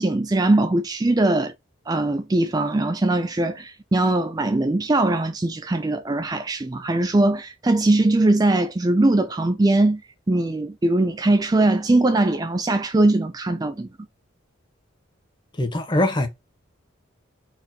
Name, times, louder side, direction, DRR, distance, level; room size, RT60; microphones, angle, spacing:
voice 1, 0.0-1.5 1.9-10.0 10.3-13.9, right 2 dB, 20° right, 0.3 m, -21 dB
voice 2, 15.6-16.3, left 1 dB, 25° left, 0.8 m, -22 dB
4.4 x 2.9 x 3.9 m
head